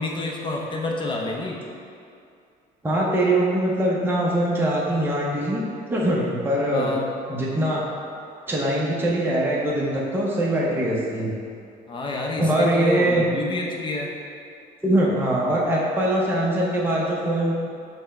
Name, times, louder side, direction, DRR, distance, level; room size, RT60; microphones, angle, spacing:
voice 1, 0.0-1.6 6.7-7.1 11.9-14.1, left 2 dB, 30° left, -1 dB, 0.6 m, -28 dB
voice 2, 2.8-5.6 5.9-6.9 7.3-7.8 8.5-11.3 12.4-13.3 14.8-17.5, right 1 dB, 10° right, -5 dB, 0.7 m, -22 dB
5.8 x 2.2 x 4.2 m, 2.5 s
cardioid pair, 110°, 17 cm